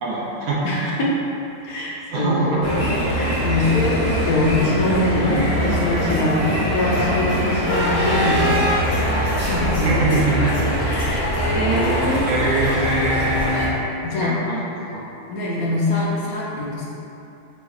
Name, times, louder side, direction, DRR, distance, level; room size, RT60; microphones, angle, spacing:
voice 1, 0.0-0.9 2.1-2.6 9.8-10.7 11.5-12.0 12.2-13.8 14.2-15.0, right 2 dB, 85° right, -6 dB, 1.1 m, -23 dB
voice 2, 0.6-1.1 1.6-9.7 10.8-12.3 14.0-14.4 15.3-16.9, left 2 dB, 85° left, -6 dB, 1.1 m, -23 dB
sound 1, 2.6-13.7, equal, 40° left, 1.3 m, -22 dB
4.2 x 3.0 x 2.3 m, 2.8 s
omnidirectional pair, 1.5 m